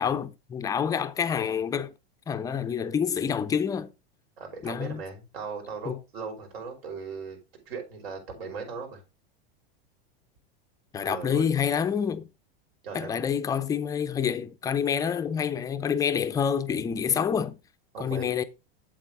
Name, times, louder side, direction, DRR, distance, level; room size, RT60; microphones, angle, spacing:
voice 1, 0.0-1.9 2.3-3.9 4.6-5.0 5.9-6.0 10.9-12.3 12.9-17.6 18.0-18.4, left 7 dB, 10° left, 0.3 m, -27 dB
voice 2, 4.4-7.4 7.7-9.0 11.0-11.5 12.8-13.1 17.9-18.3, right 5 dB, 90° right, 5.4 m, -38 dB
8.2 x 7.7 x 3.7 m
supercardioid pair, 145°, 30 cm